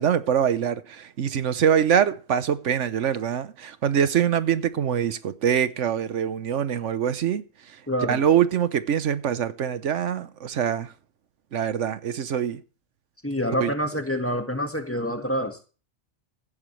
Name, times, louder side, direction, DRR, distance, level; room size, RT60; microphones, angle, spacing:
voice 1, 0.0-7.4 8.1-10.9 11.5-12.6 13.6-13.7, right 8 dB, 80° right, 1.2 m, -24 dB
voice 2, 7.9-8.2 13.2-15.6, equal, 10° left, 1.7 m, -27 dB
15.0 x 11.5 x 3.2 m
omnidirectional pair, 1.2 m